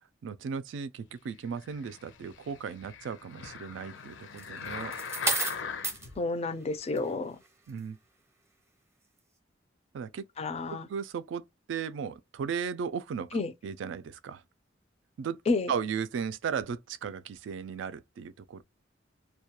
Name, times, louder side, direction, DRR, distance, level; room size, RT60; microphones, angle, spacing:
voice 1, 0.2-4.9 7.7-8.0 9.9-10.3 10.7-13.4 13.6-14.4 15.2-15.4 15.7-18.6, right 6 dB, 80° right, 0.3 m, -36 dB
sound 1, 1.6-6.2 6.8-6.9, left 6 dB, 80° left, 0.6 m, -41 dB
sound 2, 4.4-6.1 6.8-7.1, right 3 dB, 15° right, 0.6 m, -31 dB
voice 2, 6.2-7.4 10.4-10.9 13.3-13.5 15.5-15.7, left 3 dB, 35° left, 0.4 m, -30 dB
2.2 x 2.2 x 2.8 m
head